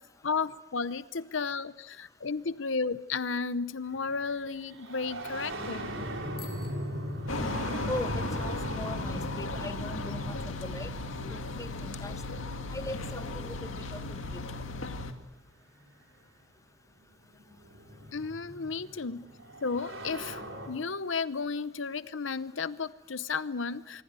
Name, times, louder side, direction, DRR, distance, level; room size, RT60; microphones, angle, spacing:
voice 1, 0.2-5.9 18.1-19.2 19.6-24.0, left 4 dB, 70° left, 15 dB, 0.8 m, -33 dB
sound 1, 4.0-14.6 15.8-15.9 17.0-20.7, equal, 80° right, 4.5 m, -40 dB
Bicycle bell, 6.3-8.0, left 6 dB, 50° left, 3.6 m, -54 dB
sound 2, 7.3-15.1, left 2 dB, 85° left, 2.1 m, -36 dB
voice 2, 7.9-10.9 11.3-12.2 12.7-14.4, left 1 dB, 15° left, 12 dB, 0.9 m, -40 dB
25.5 x 23.0 x 8.3 m, 0.99 s
head